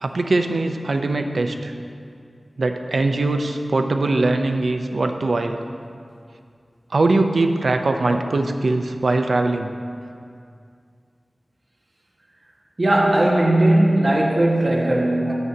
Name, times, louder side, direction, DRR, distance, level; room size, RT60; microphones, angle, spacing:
voice 1, 0.0-1.7 2.6-5.6 6.9-9.7, right 2 dB, 75° right, 5 dB, 0.6 m, -21 dB
voice 2, 12.8-15.3, right 1 dB, 50° right, -3 dB, 1.6 m, -18 dB
12.5 x 8.9 x 2.8 m, 2.3 s
wide cardioid pair, 70°, 0 cm